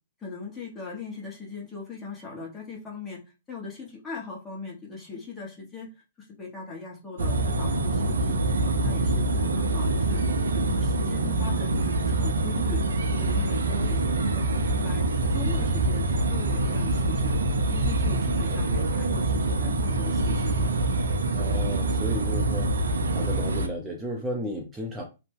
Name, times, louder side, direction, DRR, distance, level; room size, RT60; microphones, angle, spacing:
voice 1, 0.2-3.2 3.5-5.9 6.2-8.4 8.7-10.2 10.5-12.8 13.2-17.4 17.6-20.7, left 4 dB, 15° left, -3 dB, 1.2 m, -39 dB
sound 1, 7.2-23.7, right 2 dB, 70° right, 0.5 m, -25 dB
voice 2, 21.3-22.7 23.1-25.0, equal, 10° right, -1 dB, 0.6 m, -34 dB
2.8 x 2.1 x 3.4 m, 0.29 s
figure-of-eight pair, 120°, 0 cm